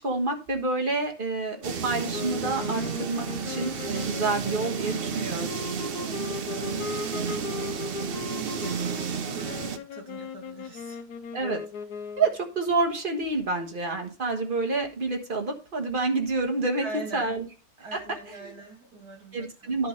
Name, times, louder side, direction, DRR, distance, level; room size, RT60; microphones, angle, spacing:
voice 1, 0.0-5.5 11.3-11.6 12.2-16.8 17.1-17.5 17.9-18.5 19.3-19.9, right 3 dB, 35° right, 1.5 m, -28 dB
sound 1, 1.6-9.8, right 6 dB, 50° right, 0.7 m, -32 dB
sound 2, 2.1-12.4, left 5 dB, 75° left, 1.3 m, -38 dB
voice 2, 6.0-7.8 8.1-11.0 16.8-17.3 17.8-19.8, right 2 dB, 65° right, 2.9 m, -42 dB
10.5 x 3.5 x 6.4 m
omnidirectional pair, 1.8 m